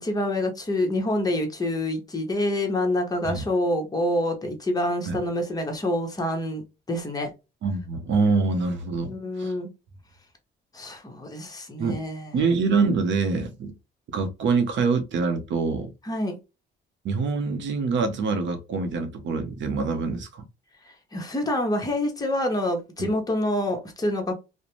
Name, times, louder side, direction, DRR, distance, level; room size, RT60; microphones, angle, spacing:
voice 1, 0.0-6.6 6.9-7.3 9.0-9.7 10.7-12.3 16.0-16.4 20.8-24.3, left 1 dB, 20° left, 0.9 m, -27 dB
voice 2, 7.6-9.5 11.8-12.0 12.3-13.7 14.1-15.9 17.0-20.4 23.0-23.1, right 4 dB, 70° right, 0.7 m, -25 dB
2.5 x 2.1 x 3.0 m
cardioid pair, 90°, 20 cm